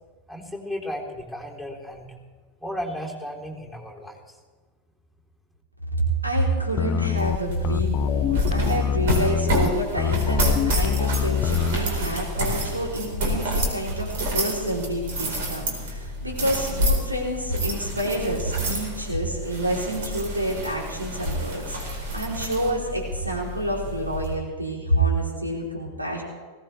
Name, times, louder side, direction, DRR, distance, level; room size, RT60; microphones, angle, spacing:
voice 1, 0.3-2.2 2.6-4.4, equal, 5° right, -2 dB, 3.6 m, -34 dB
voice 2, 6.2-26.2, right 1 dB, 85° right, -2 dB, 3.7 m, -28 dB
sound 1, 6.8-11.8, left 9 dB, 35° left, 0.4 m, -24 dB
sound 2, 7.2-24.3, equal, 55° right, 4.4 m, -29 dB
20.5 x 17.0 x 3.4 m, 1.4 s
figure-of-eight pair, 90°, 0 cm